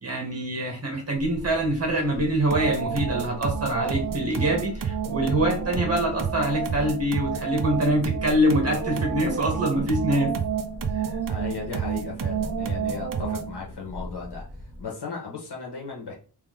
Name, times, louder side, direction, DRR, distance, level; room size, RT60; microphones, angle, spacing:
voice 1, 0.0-10.3 10.9-11.1, right 1 dB, 35° right, 1 dB, 1.8 m, -25 dB
sound 1, 1.1-14.8, left 1 dB, 5° right, 1.1 m, -40 dB
sound 2, 2.5-13.6, right 7 dB, 55° right, 0.6 m, -30 dB
voice 2, 11.3-14.4 14.8-16.1, left 4 dB, 80° left, -2 dB, 1.7 m, -35 dB
3.5 x 3.4 x 3.6 m, 0.38 s
wide cardioid pair, 130°, 40 cm